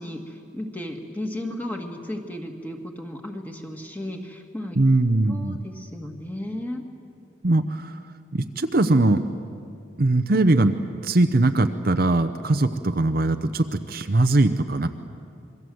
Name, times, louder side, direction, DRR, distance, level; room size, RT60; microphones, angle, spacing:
voice 1, 0.0-4.8 5.3-6.8, left 1 dB, 10° left, 3 dB, 1.9 m, -34 dB
voice 2, 4.8-5.6 7.4-8.0 8.3-9.2 10.0-14.9, right 2 dB, 50° right, 8 dB, 0.7 m, -21 dB
27.0 x 22.0 x 7.9 m, 2.4 s
head